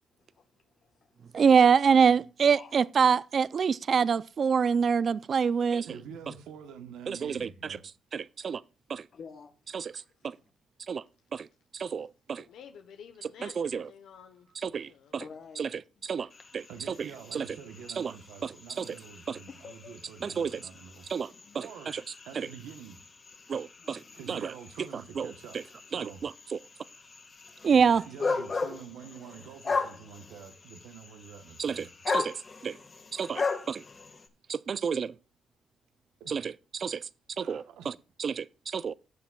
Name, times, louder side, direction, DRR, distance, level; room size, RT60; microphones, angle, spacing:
voice 1, 0.2-1.4 2.5-2.7 6.1-6.4 9.1-10.1 12.4-12.5 15.2-16.0 19.5-20.0 21.4-21.9 23.8-24.3 28.0-28.6 29.9-30.4, left 5 dB, 55° left, 1.1 m, -51 dB
voice 2, 1.3-5.9 7.1-7.5 8.1-8.6 8.9-9.0 9.7-9.9 10.9-11.0 11.3-11.5 11.7-12.4 13.4-13.9 14.6-14.9 15.6-15.7 16.0-16.3 16.5-16.7 17.3-17.4 18.0-18.1 18.4-18.5 18.8-18.9 19.3-19.4 20.2-20.6 21.1-21.3 21.9-22.0 22.4-22.5 23.5-24.0 24.3-24.5 25.2-25.3 25.9-26.3 27.6-28.0 31.6-32.8 33.1-33.8 34.5-35.1 36.3-37.1 37.4-37.9 38.2-38.9, right 6 dB, 50° right, 0.3 m, -26 dB
voice 3, 5.8-7.8 16.7-21.1 21.5-21.9 22.2-23.0 24.1-25.6 25.9-26.2 27.7-31.9 36.2-36.4 37.4-38.0, right 8 dB, 85° right, 1.0 m, -47 dB
voice 4, 12.5-14.5 14.8-15.2, left 7 dB, 80° left, 0.9 m, -50 dB
sound 1, 16.3-34.3, left 4 dB, 40° left, 1.5 m, -38 dB
16.0 x 7.1 x 2.3 m
cardioid pair, 90°, 0 cm